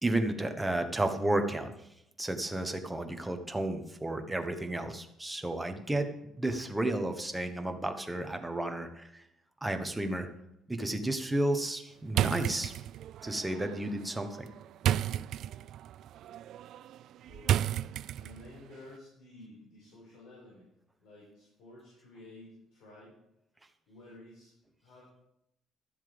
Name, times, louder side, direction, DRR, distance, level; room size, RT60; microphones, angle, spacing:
voice 1, 0.0-1.7 2.2-6.1 6.4-9.2 9.6-10.3 10.7-12.7 13.2-14.5, right 1 dB, 10° right, 6 dB, 1.1 m, -32 dB
sound 1, 12.1-18.6, right 11 dB, 65° right, 0.3 m, -33 dB
voice 2, 17.2-17.7 18.2-20.7 21.0-23.2 23.9-24.5 24.8-25.1, left 1 dB, 75° left, -5 dB, 4.6 m, -52 dB
13.0 x 7.3 x 5.1 m, 0.80 s
cardioid pair, 140°, 0 cm